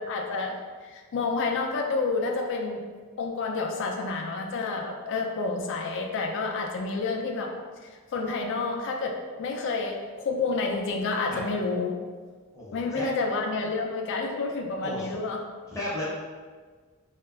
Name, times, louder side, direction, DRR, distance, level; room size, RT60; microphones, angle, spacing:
voice 1, 0.0-2.8 3.2-7.5 8.1-12.0 12.7-15.4, left 3 dB, 60° left, 3 dB, 0.4 m, -29 dB
voice 2, 12.5-13.1 14.8-15.1 15.7-16.0, left 1 dB, 15° left, -7 dB, 0.6 m, -34 dB
3.2 x 2.8 x 2.3 m, 1.5 s
head